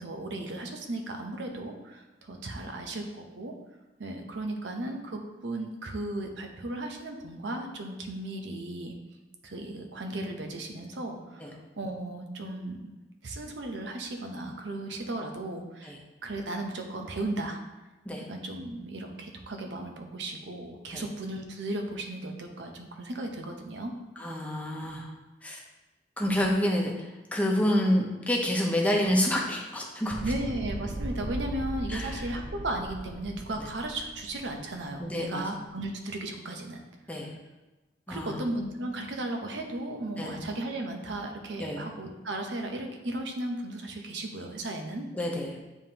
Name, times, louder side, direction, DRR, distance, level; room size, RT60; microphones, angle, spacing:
voice 1, 0.0-3.5 4.0-8.9 9.4-12.9 13.2-16.0 16.2-17.6 18.3-23.9 30.2-36.8 38.1-45.1, right 1 dB, 90° right, 3 dB, 0.8 m, -35 dB
voice 2, 24.2-25.1 25.4-25.6 26.2-30.2 31.9-32.2 35.0-35.5 37.1-37.3 38.1-38.3 40.2-40.4 41.6-41.8 45.2-45.6, left 1 dB, 10° left, -1 dB, 0.8 m, -28 dB
sound 1, 30.1-35.3, right 1 dB, 45° right, 0.6 m, -38 dB
9.3 x 3.5 x 2.9 m, 1.1 s
head